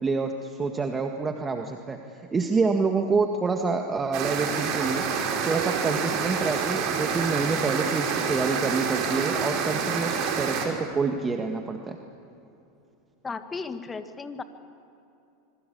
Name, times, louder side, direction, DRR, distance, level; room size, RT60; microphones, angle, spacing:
voice 1, 0.0-12.0, right 4 dB, 20° right, 4 dB, 1.8 m, -27 dB
sound 1, 4.1-10.7, right 6 dB, 55° right, 5.0 m, -27 dB
voice 2, 13.2-14.4, left 4 dB, 20° left, 9 dB, 1.9 m, -35 dB
25.5 x 23.5 x 8.6 m, 2.8 s
hypercardioid pair, 95°, 0 cm